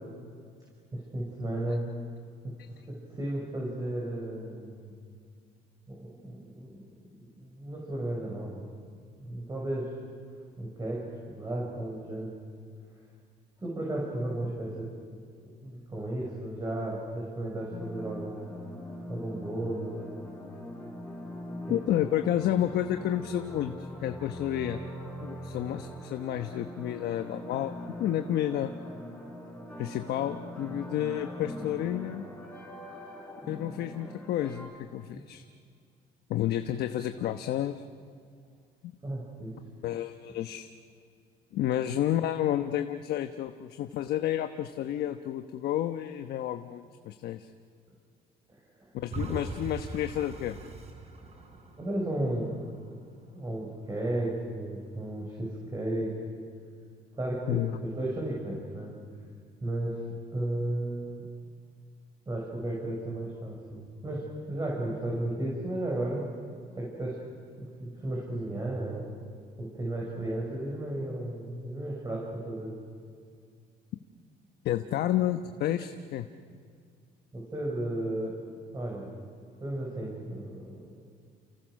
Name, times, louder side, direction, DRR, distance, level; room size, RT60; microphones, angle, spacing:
voice 1, 0.9-1.9 2.4-2.5 2.9-4.9 5.9-6.8 7.2-8.7 9.2-9.9 10.6-12.4 13.6-18.5 19.1-20.0 21.7-21.8 35.1-35.2 39.0-39.5 48.8-48.9 51.8-52.5 53.3-56.1 57.1-58.9 59.6-60.0 60.3-61.2 62.3-66.3 66.7-67.2 67.6-69.1 69.6-72.7 77.3-78.4 78.7-79.1 79.6-81.0, right 1 dB, 20° right, -3 dB, 6.5 m, -34 dB
sound 1, 17.7-34.7, equal, 5° left, 6.8 m, -42 dB
voice 2, 21.7-24.8 25.2-28.7 29.8-32.3 33.5-35.4 36.3-37.8 38.8-38.9 39.8-40.7 41.5-47.5 48.9-50.6 57.5-57.8 74.6-76.3, left 12 dB, 70° left, 7 dB, 1.1 m, -30 dB
sound 2, 49.1-54.1 54.6-54.7, right 3 dB, 40° right, 4.8 m, -42 dB
29.5 x 29.5 x 6.5 m, 2.2 s
cardioid pair, 110°, 17 cm